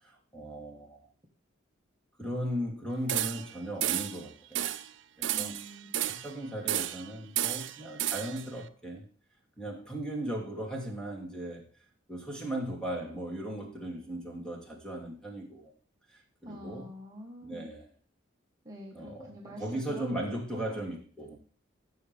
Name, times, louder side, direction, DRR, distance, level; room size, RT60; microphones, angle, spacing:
voice 1, 0.0-1.0 2.2-4.7 5.2-5.6 6.1-9.1 9.6-11.7 12.1-15.7 16.1-16.9 17.4-17.9 18.9-21.4, right 1 dB, 5° left, 2.9 m, -37 dB
sound 1, 3.1-3.5 3.8-4.2 4.6-4.9 5.2-6.3 6.7-7.1 7.4-8.4, right 12 dB, 65° right, 0.6 m, -32 dB
voice 2, 5.3-5.9 16.4-17.7 18.6-20.8, equal, 20° right, 1.5 m, -46 dB
16.0 x 6.5 x 3.5 m
head